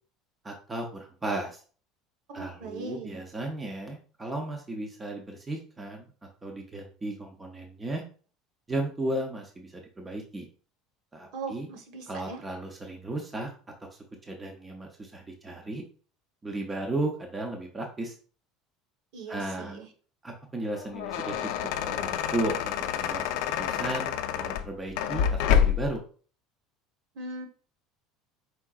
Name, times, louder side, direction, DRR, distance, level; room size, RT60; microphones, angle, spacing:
voice 1, 0.4-1.6 2.3-6.1 6.4-8.0 8.7-10.4 11.1-11.7 12.1-13.5 13.9-15.8 16.4-18.2 19.3-19.8 20.2-21.5 21.8-23.2 23.6-26.0, right 2 dB, 10° right, 1 dB, 0.5 m, -35 dB
voice 2, 2.3-3.2 11.3-12.4 19.1-19.9 27.1-27.5, right 3 dB, 55° right, 4 dB, 1.1 m, -39 dB
sound 1, 20.8-26.0, left 8 dB, 75° left, 0.4 m, -27 dB
4.6 x 3.6 x 2.4 m, 0.41 s
cardioid pair, 170°, 0 cm